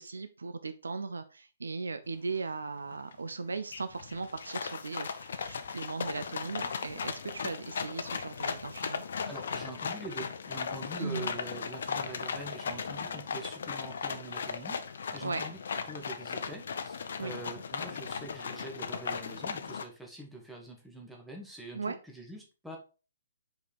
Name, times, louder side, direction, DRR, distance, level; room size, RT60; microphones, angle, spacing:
voice 1, 0.0-9.0 11.0-11.3 15.2-15.4 17.2-17.4 21.7-22.0, right 4 dB, 65° right, 10 dB, 0.6 m, -38 dB
sound 1, 2.5-2.6 2.9-3.3 3.7-19.8, left 6 dB, 55° left, 0.7 m, -37 dB
voice 2, 9.3-14.8 15.1-22.8, right 1 dB, 5° right, 0 dB, 1.5 m, -44 dB
5.2 x 5.1 x 4.2 m, 0.34 s
figure-of-eight pair, 125°, 0 cm